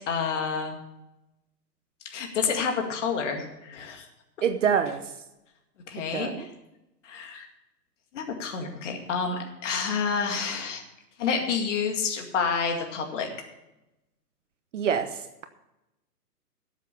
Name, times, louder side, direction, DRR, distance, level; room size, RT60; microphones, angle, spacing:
voice 1, 0.1-0.8 2.0-4.1 5.9-6.5 7.0-7.5 8.1-10.8 11.2-13.3, left 5 dB, 45° left, 3 dB, 2.2 m, -29 dB
voice 2, 4.4-5.0 6.0-6.5 14.7-15.4, right 7 dB, 50° right, 9 dB, 0.9 m, -26 dB
12.5 x 7.4 x 6.7 m, 0.93 s
hypercardioid pair, 145°, 49 cm